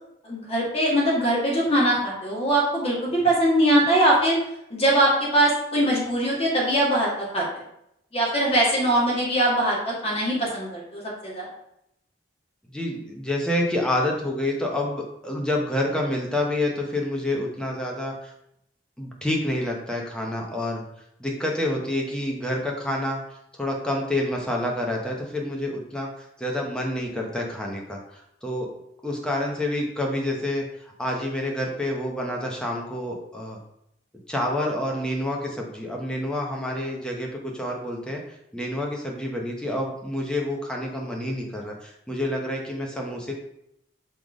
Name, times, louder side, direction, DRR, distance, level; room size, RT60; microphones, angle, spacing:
voice 1, 0.2-4.4 4.7-7.4 8.1-11.5, right 1 dB, 30° left, -5 dB, 1.8 m, -22 dB
voice 2, 12.7-18.3 19.0-20.8 21.2-23.2 23.5-28.7 29.0-33.6 34.3-38.2 38.5-43.3, left 1 dB, 5° left, -1 dB, 1.0 m, -28 dB
5.8 x 3.3 x 5.2 m, 0.79 s
head